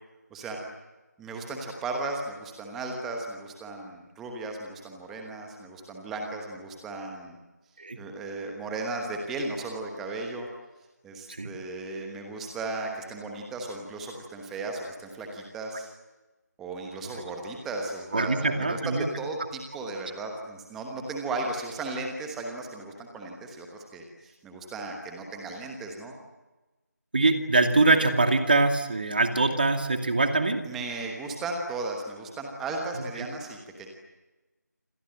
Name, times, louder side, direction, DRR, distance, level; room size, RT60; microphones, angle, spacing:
voice 1, 1.2-7.4 8.0-10.5 11.0-15.9 16.6-26.1 30.6-33.9, right 3 dB, ahead, 2 dB, 1.1 m, -35 dB
voice 2, 18.1-19.1 27.1-30.7, right 3 dB, 30° right, 6 dB, 2.4 m, -23 dB
28.0 x 26.0 x 7.8 m, 1.1 s
figure-of-eight pair, 170°, 10 cm